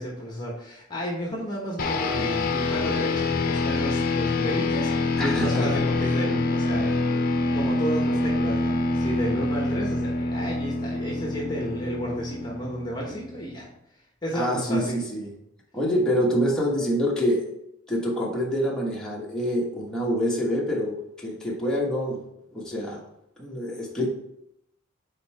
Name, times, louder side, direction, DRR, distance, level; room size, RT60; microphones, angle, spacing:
voice 1, 0.0-7.0 7.5-13.7 14.2-15.0, equal, 20° left, -2 dB, 1.1 m, -32 dB
sound 1, 1.8-13.5, left 3 dB, 50° left, 0.6 m, -26 dB
voice 2, 5.2-5.8 14.3-15.3 15.7-17.5 17.9-22.2 22.5-23.0 23.4-24.1, equal, 5° left, -5 dB, 1.3 m, -26 dB
5.6 x 4.5 x 4.2 m, 0.79 s
head